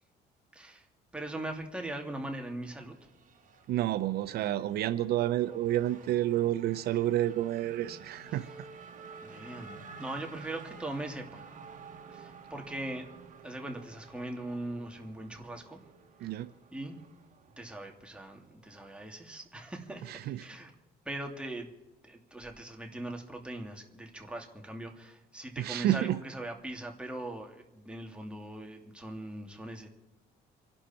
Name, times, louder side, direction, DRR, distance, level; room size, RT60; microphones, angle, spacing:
voice 1, 0.5-0.9 1.1-3.0 8.3-8.5 9.2-11.5 12.1-13.1 13.4-15.8 16.2-16.3 16.7-17.0 17.6-20.7 21.0-21.7 22.0-29.9, right 1 dB, 5° right, 2 dB, 2.7 m, -40 dB
Race car auto racing / Accelerating revving vroom, 2.1-19.0, right 5 dB, 50° right, 2.9 m, -51 dB
voice 2, 3.7-8.4 16.2-16.5 20.1-20.4 25.6-26.2, right 13 dB, 70° right, 13 dB, 0.7 m, -29 dB
27.5 x 11.5 x 4.5 m, 1.0 s
cardioid pair, 110°, 17 cm